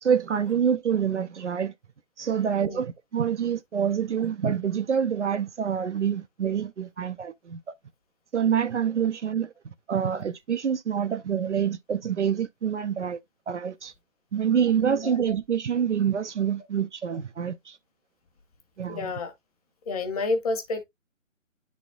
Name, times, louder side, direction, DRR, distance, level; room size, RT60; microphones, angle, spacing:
voice 1, 0.0-1.7 2.2-7.6 8.3-9.5 9.9-13.2 13.5-13.9 14.3-17.8 18.8-19.1, right 8 dB, 60° right, 0.6 m, -26 dB
voice 2, 18.9-19.3 19.9-20.8, left 3 dB, 30° left, 1.3 m, -29 dB
10.0 x 4.2 x 2.3 m
figure-of-eight pair, 145°, 40 cm